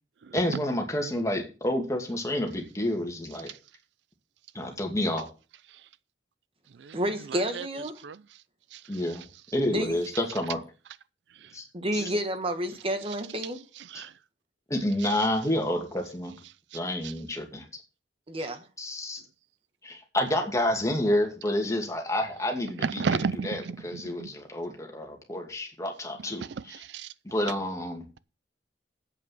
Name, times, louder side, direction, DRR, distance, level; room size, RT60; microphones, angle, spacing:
voice 1, 0.3-3.5 4.5-5.3 8.9-9.2 9.5-10.6 11.5-11.6 11.9-12.0 14.7-16.3 16.7-17.7 18.8-19.2 19.8-26.8 27.2-28.0, left 1 dB, 20° left, 2.5 m, -29 dB
voice 2, 6.9-8.0 9.7-10.0 11.7-13.6 18.3-18.6, equal, 35° right, 1.3 m, -30 dB
voice 3, 22.8-24.3 26.4-27.1, right 5 dB, 70° right, 0.4 m, -32 dB
8.4 x 7.3 x 7.4 m
head